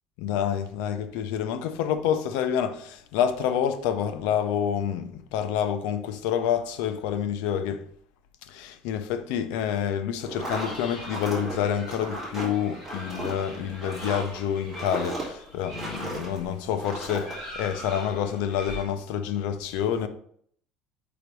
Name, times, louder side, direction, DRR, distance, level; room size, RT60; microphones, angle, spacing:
voice 1, 0.2-7.8 8.5-20.1, left 8 dB, 75° left, 0.6 m, -28 dB
sound 1, 10.2-16.4 16.8-17.4, right 1 dB, 5° right, 2.3 m, -35 dB
sound 2, 10.4-18.9, left 1 dB, 20° left, 2.4 m, -44 dB
5.0 x 3.9 x 4.7 m
cardioid pair, 175°, 2 cm